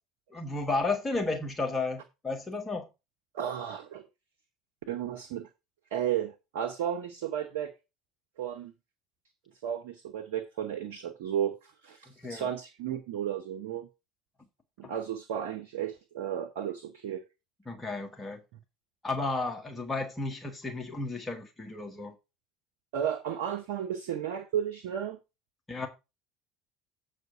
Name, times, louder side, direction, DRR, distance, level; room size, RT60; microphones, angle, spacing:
voice 1, 0.3-2.8 12.2-12.5 17.6-18.4 19.0-22.1 25.7-25.9, left 3 dB, 20° left, 1.7 m, -33 dB
voice 2, 3.3-4.0 4.9-5.5 5.9-7.7 8.4-8.7 9.6-13.9 14.8-17.2 22.9-25.2, right 9 dB, 65° right, 0.9 m, -33 dB
8.0 x 5.0 x 5.6 m
figure-of-eight pair, 65°, 0 cm